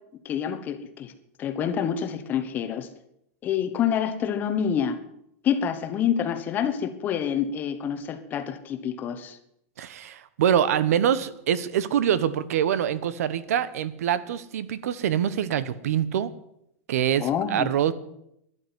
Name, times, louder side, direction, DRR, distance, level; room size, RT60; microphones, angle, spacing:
voice 1, 0.2-1.1 1.4-2.9 3.4-5.0 5.4-9.4 17.2-17.7, left 8 dB, 20° left, 10 dB, 1.2 m, -27 dB
voice 2, 9.8-16.3 16.9-17.9, right 9 dB, 75° right, 17 dB, 1.2 m, -25 dB
12.5 x 11.0 x 9.6 m, 0.78 s
supercardioid pair, 170°, 8 cm